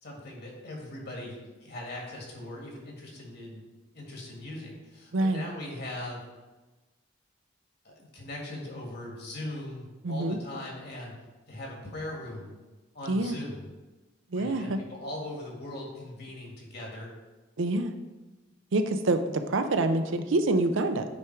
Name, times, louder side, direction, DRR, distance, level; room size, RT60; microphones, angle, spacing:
voice 1, 0.0-3.7 3.9-6.2 7.8-11.1 11.5-12.6 12.9-13.7 14.3-17.1, left 1 dB, 55° left, -1 dB, 1.8 m, -40 dB
voice 2, 10.0-10.4 13.1-13.4 14.3-14.8 17.6-17.9 18.7-21.1, right 2 dB, 75° right, 8 dB, 0.6 m, -26 dB
8.8 x 3.5 x 4.6 m, 1.2 s
head